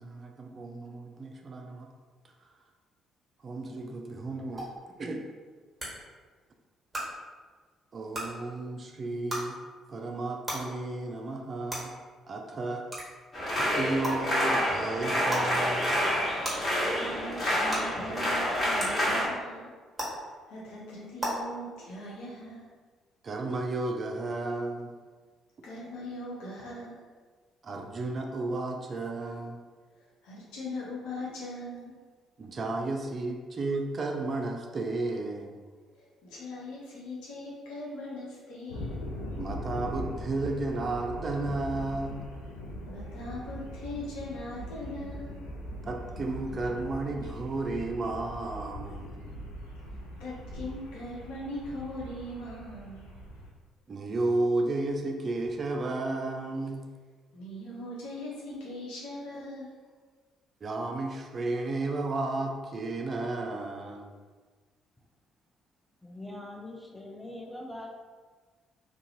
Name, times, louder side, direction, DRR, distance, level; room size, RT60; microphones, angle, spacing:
voice 1, 0.0-1.9 3.4-4.7 5.0-5.2 7.9-9.6 9.9-11.9 12.3-12.8 13.6-16.0 23.2-24.9 27.6-29.6 32.4-35.5 39.4-42.3 45.8-49.1 53.9-56.8 60.6-64.1, right 2 dB, 45° right, 2 dB, 0.4 m, -33 dB
sound 1, 4.6-4.7 5.8-5.9 6.9-7.0 8.1-8.2 9.3-9.4 10.5-10.6 11.7-11.8 12.9-13.0 14.0-14.1 15.3-15.4 16.4-16.5 17.7-17.8 18.8-18.9 20.0-20.1 21.2-21.3, equal, 15° right, 1.3 m, -32 dB
sound 2, 13.3-19.3, equal, 30° left, 1.4 m, -28 dB
voice 2, 16.9-19.7 20.2-22.6 25.6-27.0 30.0-31.9 36.0-39.0 42.8-45.4 49.8-53.1 57.3-59.8, left 1 dB, 70° left, -6 dB, 0.8 m, -40 dB
sound 3, 38.7-53.5, equal, 90° left, 0.4 m, -41 dB
voice 3, 66.0-67.9, left 1 dB, 10° left, 0 dB, 0.5 m, -42 dB
2.5 x 2.3 x 2.8 m, 1.5 s
hypercardioid pair, 45°, 0 cm